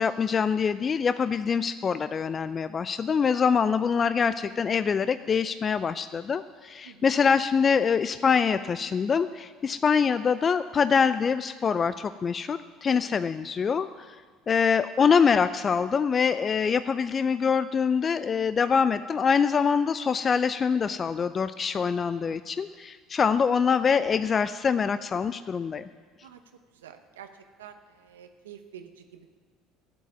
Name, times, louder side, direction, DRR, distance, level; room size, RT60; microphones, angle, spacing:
voice 1, 0.0-14.2 14.5-25.8, left 6 dB, 35° left, 13 dB, 0.4 m, -24 dB
voice 2, 6.8-7.1 9.6-9.8 12.9-13.1 26.2-26.4 26.7-27.3 27.6-29.3, right 9 dB, 85° right, 7 dB, 0.8 m, -48 dB
12.5 x 7.6 x 9.4 m, 1.6 s
hypercardioid pair, 70°, 0 cm